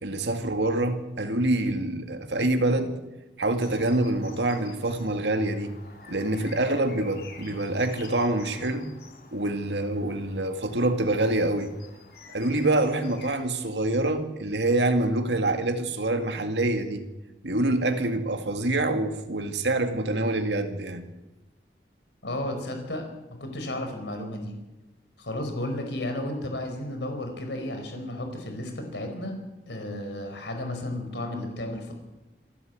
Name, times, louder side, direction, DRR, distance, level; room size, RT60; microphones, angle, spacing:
voice 1, 0.0-3.0 3.4-5.8 6.1-8.9 9.3-11.7 12.3-17.0 17.4-21.1, right 2 dB, 90° right, 2.2 m, -26 dB
sound 1, 3.5-13.4, left 3 dB, 60° left, 4.6 m, -49 dB
voice 2, 22.2-24.6 25.2-29.4 29.7-31.9, left 1 dB, 90° left, 4.7 m, -33 dB
26.5 x 12.5 x 8.2 m
head